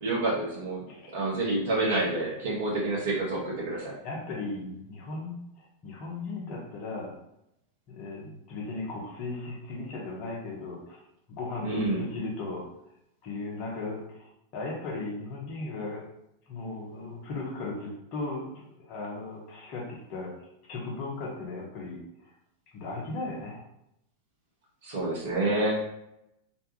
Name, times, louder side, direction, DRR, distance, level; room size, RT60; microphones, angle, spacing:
voice 1, 0.0-0.8 1.1-3.9 11.6-12.0 24.8-25.8, right 2 dB, 55° right, -4 dB, 1.0 m, -28 dB
voice 2, 0.9-1.2 3.7-7.2 7.9-11.0 11.3-12.7 13.2-16.1 16.5-22.0 22.7-23.6 24.9-25.0, left 3 dB, 40° left, -2 dB, 0.8 m, -37 dB
2.6 x 2.2 x 2.8 m, 0.82 s
figure-of-eight pair, 90°, 0 cm